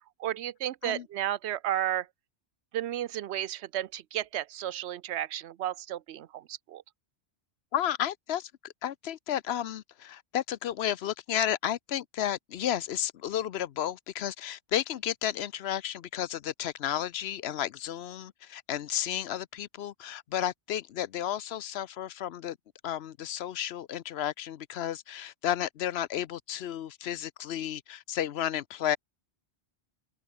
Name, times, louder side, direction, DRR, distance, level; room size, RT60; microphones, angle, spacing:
voice 1, 0.2-2.1 2.7-6.8, right 12 dB, 80° right, 0.9 m, -33 dB
voice 2, 7.7-22.6 22.8-29.0, left 11 dB, 70° left, 0.9 m, -32 dB
omnidirectional pair, 1.1 m